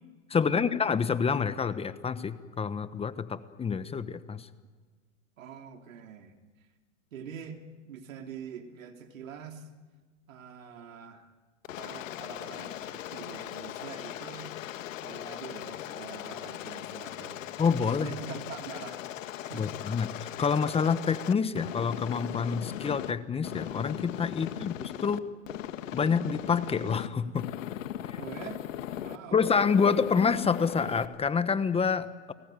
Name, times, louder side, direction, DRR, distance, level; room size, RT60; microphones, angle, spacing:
voice 1, 0.3-4.5 17.6-18.1 19.5-25.2 25.9-27.5 28.1-28.2 29.3-32.3, left 6 dB, 15° left, 12 dB, 1.1 m, -27 dB
voice 2, 5.4-6.4 7.1-9.7 10.3-11.3 11.7-14.6 15.0-17.5 17.8-19.8 24.4-24.7 28.2-28.6 28.9-29.4, right 7 dB, 80° right, 4 dB, 3.3 m, -45 dB
Aircraft, 11.6-23.1 23.4-25.2 25.5-27.1 27.4-29.2 29.5-31.1, left 12 dB, 75° left, 1.7 m, -38 dB
30.0 x 19.0 x 9.2 m, 1.4 s
hypercardioid pair, 120°, 39 cm